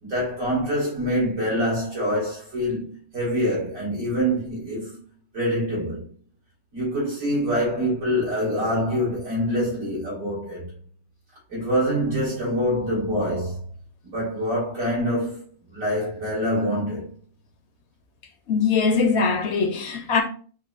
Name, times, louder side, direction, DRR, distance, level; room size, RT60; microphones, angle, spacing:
voice 1, 0.0-5.0 5.3-6.0 6.7-10.7 11.5-13.6 14.0-15.4 15.7-17.1, equal, 90° right, 2.5 m, -25 dB
voice 2, 18.5-20.2, left 5 dB, 65° left, 0.8 m, -21 dB
5.2 x 2.2 x 2.4 m
omnidirectional pair, 1.3 m